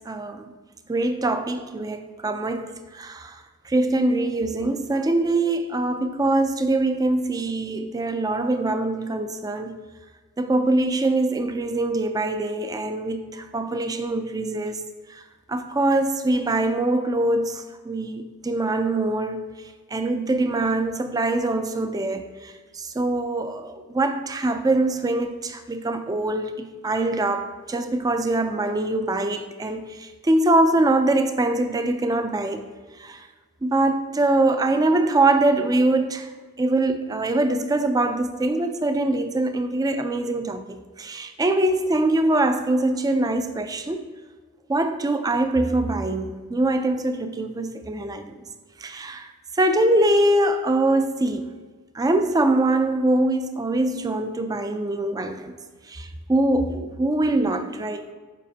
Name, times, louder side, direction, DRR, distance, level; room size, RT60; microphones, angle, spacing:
voice 1, 0.1-0.4 0.9-3.4 3.7-9.7 10.4-14.8 15.5-19.4 19.9-32.6 33.0-33.2 33.6-36.3 36.6-44.0 44.7-48.3 48.8-49.3 49.6-51.5 52.0-55.5 55.9-58.1, right 2 dB, 15° right, 0.3 m, -23 dB
7.2 x 4.9 x 2.8 m
head